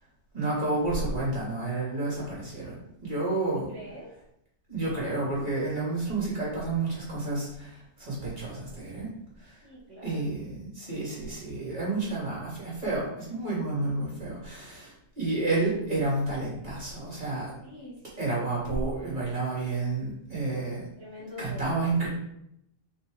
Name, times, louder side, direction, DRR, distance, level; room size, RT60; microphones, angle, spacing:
voice 1, 0.3-3.7 4.7-9.1 9.4-9.6 10.0-17.5 18.2-20.8 21.4-22.1, right 2 dB, 40° right, -6 dB, 3.0 m, -30 dB
voice 2, 3.7-4.1 9.6-10.2 17.6-18.4 21.0-21.9, left 1 dB, 80° right, -6 dB, 1.8 m, -44 dB
6.0 x 4.5 x 3.9 m, 0.78 s
omnidirectional pair, 1.2 m